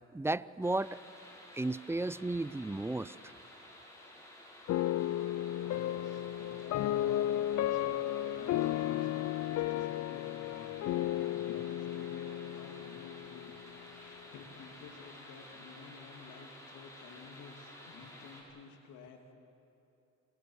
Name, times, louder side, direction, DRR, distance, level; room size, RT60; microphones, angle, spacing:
voice 1, 0.1-1.0 1.5-3.3, right 2 dB, 10° right, 18 dB, 0.5 m, -34 dB
sound 1, 0.6-18.4, left 1 dB, 10° left, 7.2 m, -53 dB
sound 2, 4.7-13.9, left 13 dB, 60° left, 0.5 m, -34 dB
voice 2, 5.6-10.7 11.0-13.5 13.8-19.3, left 5 dB, 90° left, 4 dB, 2.6 m, -53 dB
29.0 x 21.0 x 6.4 m, 2.8 s
cardioid pair, 90°, 30 cm